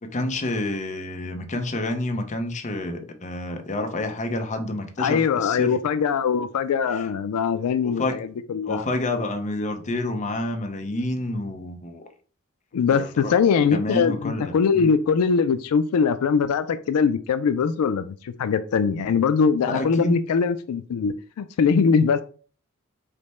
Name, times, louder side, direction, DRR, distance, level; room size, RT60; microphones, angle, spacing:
voice 1, 0.0-5.8 6.9-7.1 7.8-8.2 8.6-12.0 12.9-13.3 13.7-14.9 19.7-20.2, left 1 dB, 35° left, 0.7 m, -29 dB
voice 2, 5.0-8.9 12.7-22.2, left 6 dB, 80° left, 0.4 m, -22 dB
5.1 x 2.1 x 4.2 m
head